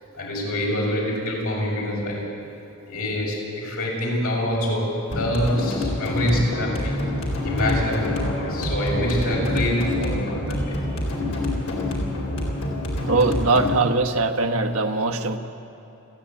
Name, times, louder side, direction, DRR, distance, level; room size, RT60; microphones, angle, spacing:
voice 1, 0.1-2.4 2.9-7.0 7.4-10.7, equal, 80° left, -3 dB, 6.3 m, -25 dB
sound 1, 5.1-13.7, left 1 dB, 65° left, 4.2 m, -26 dB
voice 2, 13.0-15.4, right 3 dB, 75° right, 5 dB, 1.2 m, -21 dB
29.5 x 10.0 x 8.7 m, 2.9 s
head